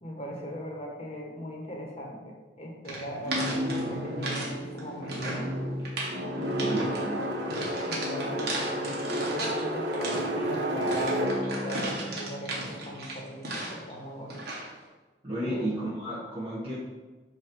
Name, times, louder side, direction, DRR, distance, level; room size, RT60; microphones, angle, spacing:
voice 1, 0.0-5.5 6.4-7.2 7.8-11.3 11.6-14.5 15.4-15.8, equal, 35° left, 0 dB, 1.3 m, -39 dB
sound 1, 2.8-4.5 4.8-5.5 5.8-6.2 6.6-7.0 7.5-9.6 9.9-13.9 14.3-14.7, right 2 dB, 60° right, 1.6 m, -35 dB
sound 2, 3.2-13.2, equal, 90° right, 1.2 m, -32 dB
voice 2, 6.6-7.4 15.2-16.7, right 1 dB, 30° right, -11 dB, 1.6 m, -33 dB
8.5 x 3.0 x 4.6 m, 1.3 s
head